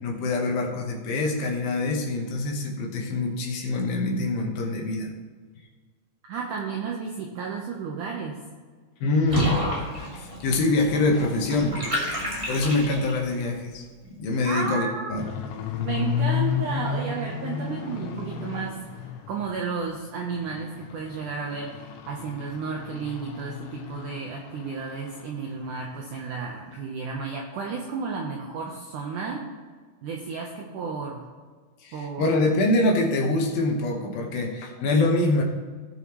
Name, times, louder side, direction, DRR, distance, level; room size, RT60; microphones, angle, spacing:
voice 1, 0.0-5.1 9.0-9.6 9.9-12.2 12.5-15.3 31.8-35.4, left 2 dB, 70° left, 1 dB, 2.7 m, -25 dB
voice 2, 6.3-8.4 14.5-15.2 15.8-18.8 19.3-29.4 30.0-31.2 31.9-32.3, right 5 dB, 80° right, 0 dB, 1.8 m, -32 dB
Water / Bathtub (filling or washing), 9.3-13.3, equal, 35° right, 0.5 m, -30 dB
sound 1, 15.2-19.7 20.1-25.3 25.6-25.9 26.3-26.4 26.7-26.8, left 7 dB, 90° left, 3.1 m, -32 dB
17.5 x 7.0 x 3.0 m, 1.5 s
omnidirectional pair, 4.8 m